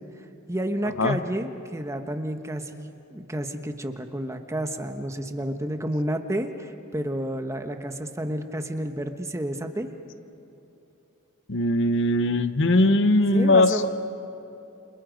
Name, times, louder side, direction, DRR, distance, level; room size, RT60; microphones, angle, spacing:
voice 1, 0.5-9.9 13.3-13.9, right 1 dB, 15° right, 6 dB, 1.1 m, -30 dB
voice 2, 11.5-13.9, left 2 dB, 60° left, 11 dB, 0.9 m, -20 dB
29.5 x 27.5 x 5.3 m, 2.9 s
head